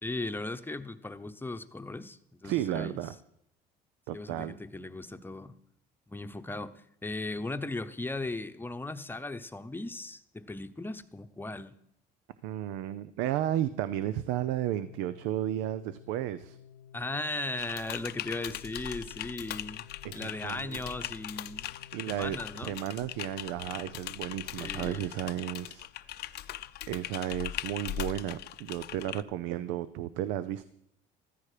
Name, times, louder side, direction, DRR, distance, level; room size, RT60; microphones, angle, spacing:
voice 1, 0.0-3.0 4.1-5.6 6.1-6.7 7.0-11.7 16.9-19.8 20.1-21.7 22.1-22.8 24.6-25.1, left 2 dB, 10° left, 9 dB, 0.9 m, -37 dB
voice 2, 2.4-3.1 4.1-4.6 12.4-16.6 20.0-20.8 21.9-22.4 22.6-25.9 26.2-26.4 26.9-30.6, right 12 dB, 90° right, 14 dB, 0.6 m, -33 dB
Organ, 14.5-25.4, left 8 dB, 85° left, 0.9 m, -54 dB
Typing, 17.6-29.2, left 13 dB, 60° left, 0.7 m, -40 dB
14.0 x 14.0 x 5.0 m, 0.74 s
cardioid pair, 105°, 19 cm